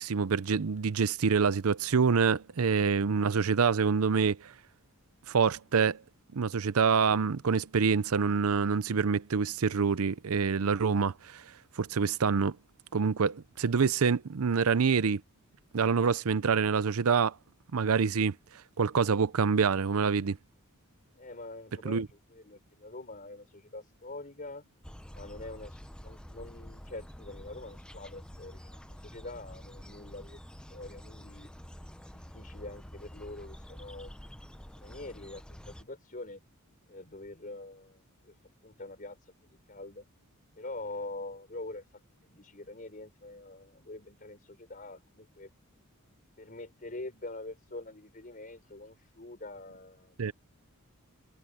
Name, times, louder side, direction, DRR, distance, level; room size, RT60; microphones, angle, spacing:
voice 1, 0.0-4.5 5.3-6.0 6.3-11.4 11.8-12.6 12.9-15.2 15.7-17.3 17.7-18.3 18.8-20.4 21.8-22.1 50.2-50.3, right 5 dB, 75° right, 0.6 m, -26 dB
voice 2, 21.2-24.6 25.1-30.4 30.7-31.5 32.0-34.1 34.8-36.4 36.9-38.4 38.6-40.1 40.6-45.5 46.4-50.2, left 2 dB, 40° left, 4.5 m, -45 dB
sound 1, 24.8-35.8, equal, 5° left, 0.7 m, -48 dB
head